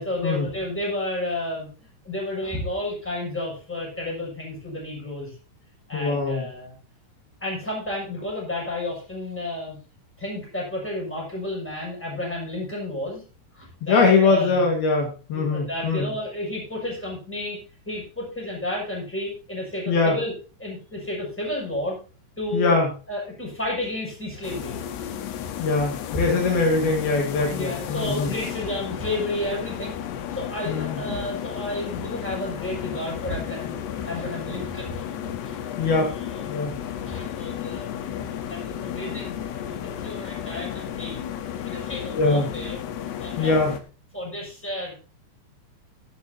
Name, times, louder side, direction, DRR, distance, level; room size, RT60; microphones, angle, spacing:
voice 1, 0.0-5.3 5.9-6.7 7.4-9.8 10.2-13.2 13.5-14.7 15.3-17.6 17.8-20.3 20.6-22.0 22.4-22.8 23.1-24.8 25.4-25.5 26.9-27.0 27.4-30.0 30.3-35.2 35.4-35.6 35.9-36.1 36.3-36.5 37.1-37.9 38.5-41.2 41.6-42.8 43.2-43.5 44.1-44.9, left 1 dB, 5° left, -3 dB, 6.1 m, -32 dB
voice 2, 5.9-6.5 13.8-16.1 19.9-20.2 22.5-22.9 25.6-28.3 30.7-31.0 35.8-36.1 36.5-36.7 42.1-42.5 43.4-43.8, left 3 dB, 65° left, 1 dB, 3.7 m, -22 dB
sound 1, 24.4-43.8, left 10 dB, 85° left, 3.2 m, -33 dB
13.0 x 12.0 x 2.8 m, 0.35 s
omnidirectional pair, 4.8 m